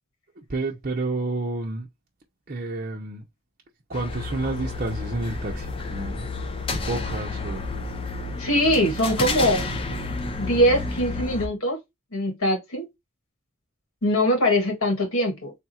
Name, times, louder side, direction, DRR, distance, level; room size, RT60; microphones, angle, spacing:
voice 1, 0.5-1.9 2.5-3.2 3.9-6.3 6.7-7.6, right 2 dB, 40° right, 0.7 m, -30 dB
sound 1, 3.9-11.5, left 3 dB, 25° left, 0.5 m, -30 dB
voice 2, 8.4-9.6 10.4-11.8 12.1-12.9 14.0-15.5, equal, 90° left, 1.8 m, -22 dB
3.6 x 2.4 x 4.2 m
head